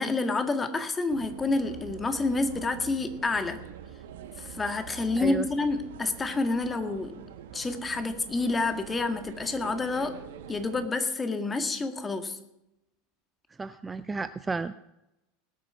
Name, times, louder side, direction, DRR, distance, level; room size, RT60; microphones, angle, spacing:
voice 1, 0.0-3.6 4.4-7.2 7.5-10.2 10.5-12.4, left 3 dB, 20° left, 8 dB, 1.9 m, -28 dB
sound 1, 1.1-10.9, right 9 dB, 70° right, 1.5 m, -45 dB
voice 2, 5.2-5.5 13.6-14.8, right 4 dB, 15° right, 13 dB, 0.5 m, -32 dB
19.5 x 8.5 x 5.7 m, 0.88 s
figure-of-eight pair, 80°, 0 cm